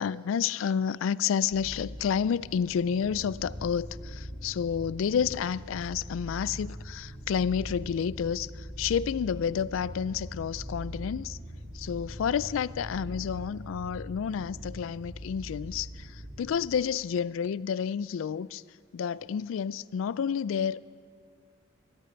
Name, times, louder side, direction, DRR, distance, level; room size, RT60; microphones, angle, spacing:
voice 1, 0.0-11.4 11.7-18.6 18.9-20.8, left 7 dB, 80° left, 0.3 m, -30 dB
sound 1, 1.5-16.5, equal, 65° right, 2.1 m, -42 dB
17.5 x 14.5 x 4.6 m
head